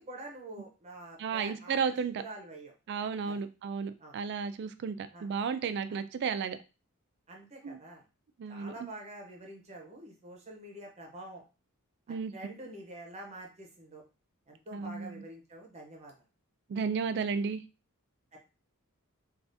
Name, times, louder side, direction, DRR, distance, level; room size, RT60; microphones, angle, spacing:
voice 1, 0.0-2.7 3.2-3.4 4.0-4.2 5.1-5.3 5.9-6.0 7.3-8.0 8.5-11.4 12.1-14.0 14.5-16.1 18.3-18.4, right 1 dB, 30° right, 1 dB, 0.7 m, -47 dB
voice 2, 1.2-2.2 2.9-6.6 7.6-7.8 8.4-8.7 12.1-12.3 14.7-15.2 16.7-17.6, right 6 dB, 50° right, 10 dB, 0.3 m, -33 dB
3.4 x 2.4 x 2.6 m, 0.30 s
head